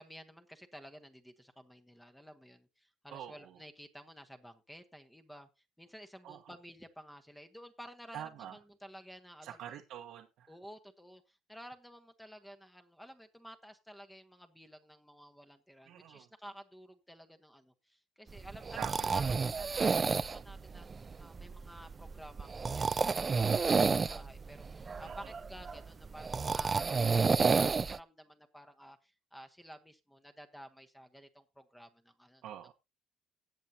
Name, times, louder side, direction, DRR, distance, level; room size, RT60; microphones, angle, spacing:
voice 1, 0.0-5.5 5.8-9.6 10.5-18.8 19.1-20.9 21.2-32.4, equal, 5° left, 1.2 m, -53 dB
voice 2, 3.1-3.6 6.2-6.4 8.1-8.6 9.4-10.5 15.8-16.3 18.7-19.6 25.0-25.4 32.4-32.7, right 10 dB, 75° right, 1.2 m, -46 dB
sound 1, 18.3-28.0, right 5 dB, 25° right, 0.5 m, -31 dB
17.5 x 7.5 x 2.8 m
cardioid pair, 115°, 0 cm